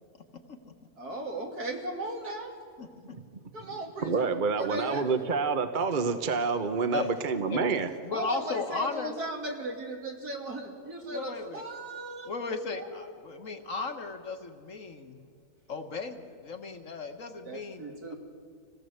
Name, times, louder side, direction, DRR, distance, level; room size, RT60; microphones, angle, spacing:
voice 1, 1.0-2.5 3.5-4.3 4.5-5.1 8.1-12.3 12.7-13.1 17.4-18.2, right 1 dB, 80° right, 0 dB, 3.4 m, -37 dB
voice 2, 2.8-3.2 6.9-7.1 7.5-7.7 8.0-9.1 11.1-11.6 12.2-15.3 15.7-18.1, left 4 dB, 55° left, 5 dB, 1.7 m, -36 dB
voice 3, 4.0-7.9, right 4 dB, 35° right, 8 dB, 1.0 m, -28 dB
26.0 x 17.5 x 8.0 m, 2.2 s
omnidirectional pair, 1.6 m